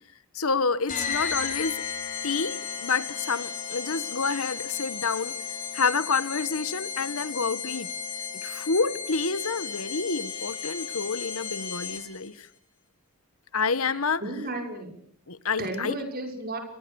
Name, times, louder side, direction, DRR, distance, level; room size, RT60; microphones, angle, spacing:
voice 1, 0.3-1.8 2.2-5.3 5.7-7.9 8.4-12.5 13.5-14.2 15.3-16.0, left 4 dB, 75° left, 16 dB, 1.4 m, -28 dB
sound 1, 0.9-12.3, left 7 dB, 35° left, 4.5 m, -34 dB
voice 2, 13.8-15.0 15.6-16.6, right 2 dB, 40° right, 5 dB, 6.0 m, -34 dB
29.5 x 23.0 x 7.1 m, 0.62 s
head